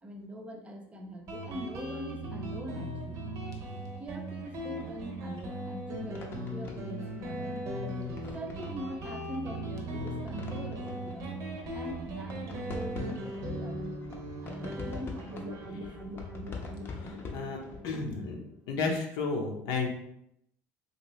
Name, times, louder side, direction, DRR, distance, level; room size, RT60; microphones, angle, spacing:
voice 1, 0.0-3.2 4.0-7.7 8.3-11.3 11.7-13.8 14.4-15.9, equal, 20° right, 3 dB, 0.5 m, -43 dB
Guitar, 1.3-18.5, right 1 dB, 55° right, 0.7 m, -38 dB
sound 1, 4.8-17.8, left 3 dB, 35° left, 0.6 m, -46 dB
voice 2, 17.0-17.6 17.8-18.4 18.7-19.9, left 4 dB, 75° left, 1 dB, 0.7 m, -32 dB
2.9 x 2.6 x 3.0 m, 0.76 s
supercardioid pair, 105°, 6 cm